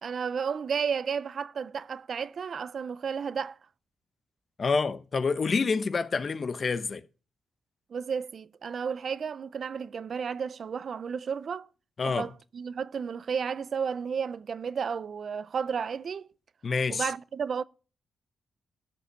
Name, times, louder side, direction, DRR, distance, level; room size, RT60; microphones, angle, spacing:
voice 1, 0.0-3.6 7.9-11.7 12.1-16.3 16.9-17.6, right 6 dB, 55° right, 0.5 m, -32 dB
voice 2, 4.6-7.0 12.0-12.3 16.6-17.1, left 4 dB, 45° left, 0.9 m, -27 dB
13.0 x 5.4 x 6.3 m
cardioid pair, 90°, 0 cm